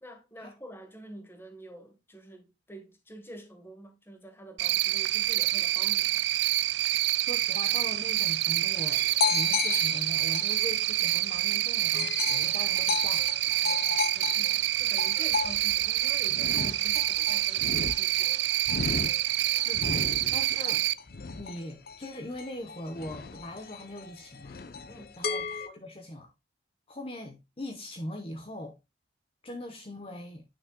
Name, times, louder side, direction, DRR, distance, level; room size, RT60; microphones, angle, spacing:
voice 1, 0.0-6.3 13.6-17.7 18.0-18.4 19.0-19.2 24.9-25.3, right 1 dB, 10° left, 1.4 m, -48 dB
Cricket, 4.6-20.9, right 15 dB, 70° right, 0.3 m, -27 dB
voice 2, 7.2-13.3 19.4-20.9 21.4-24.6 25.2-26.3 26.9-28.8 29.4-30.4, left 1 dB, 30° left, 1.0 m, -41 dB
sound 1, 8.8-11.5 11.9-25.7, left 6 dB, 55° left, 0.7 m, -34 dB
9.3 x 6.4 x 2.3 m
head